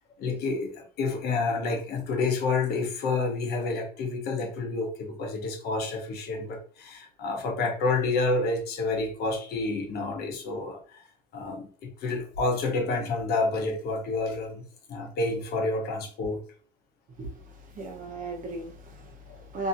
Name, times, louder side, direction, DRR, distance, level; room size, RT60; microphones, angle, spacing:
voice 1, 0.2-10.8 11.3-14.6 14.9-16.4, left 3 dB, 70° left, 2 dB, 0.9 m, -29 dB
voice 2, 17.2-19.7, right 2 dB, 55° right, 2 dB, 0.9 m, -37 dB
2.8 x 2.7 x 2.5 m, 0.42 s
cardioid pair, 110°, 17 cm